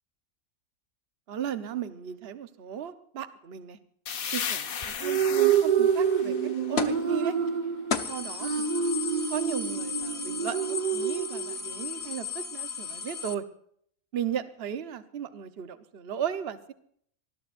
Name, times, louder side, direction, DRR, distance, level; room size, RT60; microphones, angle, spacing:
voice 1, 1.3-3.8 4.3-6.3 6.7-7.3 8.1-10.6 10.9-13.4 14.1-16.7, right 9 dB, 50° right, 11 dB, 1.2 m, -36 dB
sound 1, 4.1-7.7, left 7 dB, 90° left, 1.6 m, -36 dB
sound 2, 4.8-11.9, right 7 dB, 35° right, 1.4 m, -27 dB
sound 3, 6.8-7.1 7.5-7.6 7.9-13.3, left 6 dB, 50° left, 1.3 m, -34 dB
25.0 x 20.0 x 2.6 m, 0.65 s
omnidirectional pair, 1.4 m